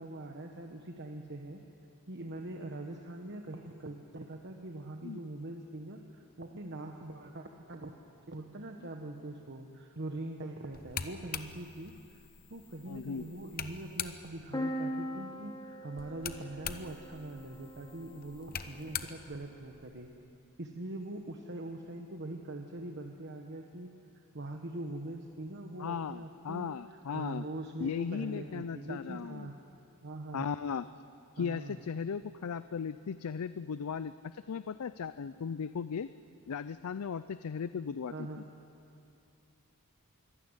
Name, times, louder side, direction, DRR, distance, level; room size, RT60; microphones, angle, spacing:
voice 1, 0.0-1.6 2.1-7.9 8.3-12.2 12.5-20.1 20.6-29.6 30.0-30.5 31.4-31.8 38.1-38.5, right 2 dB, 50° right, 3 dB, 1.1 m, -43 dB
sound 1, 10.7-14.5 16.0-20.2, left 8 dB, 40° left, 0.9 m, -44 dB
voice 2, 12.9-13.3 25.8-27.5 27.8-29.5 30.3-30.9 31.3-36.1 36.5-38.1, left 6 dB, 75° left, 14 dB, 0.4 m, -37 dB
sound 2, 14.5-18.3, equal, 15° left, 1.3 m, -40 dB
23.5 x 16.0 x 9.7 m, 2.6 s
head